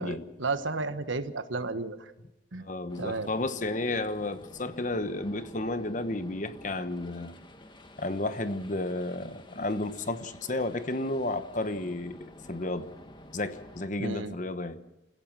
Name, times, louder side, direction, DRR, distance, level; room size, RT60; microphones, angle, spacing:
voice 1, 0.0-2.1 2.5-2.7 3.0-3.3 14.0-14.3, right 3 dB, 85° right, 1.3 m, -33 dB
voice 2, 2.6-7.4 8.0-12.9 13.3-14.9, left 2 dB, 40° left, 1.1 m, -32 dB
sound 1, 2.9-13.9, left 1 dB, 25° left, 1.5 m, -50 dB
28.5 x 16.0 x 6.3 m
head